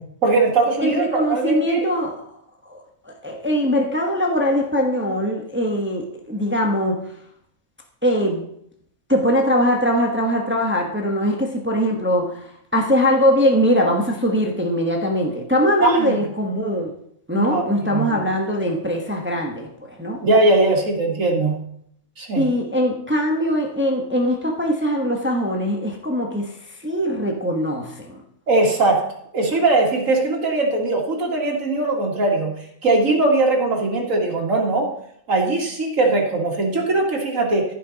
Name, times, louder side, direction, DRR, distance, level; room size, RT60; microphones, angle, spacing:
voice 1, 0.2-1.8 15.8-16.2 17.3-17.6 17.9-18.2 20.2-21.6 22.2-22.5 28.5-29.1 29.3-32.5 32.8-34.9 35.3-37.6, right 2 dB, 70° right, 0 dB, 2.3 m, -20 dB
voice 2, 0.8-2.2 2.7-2.8 3.1-7.0 8.0-8.5 9.1-16.9 17.3-20.2 22.4-26.5 26.8-28.2, equal, 10° right, 1 dB, 1.0 m, -21 dB
14.5 x 5.5 x 4.0 m, 0.69 s
omnidirectional pair, 1.5 m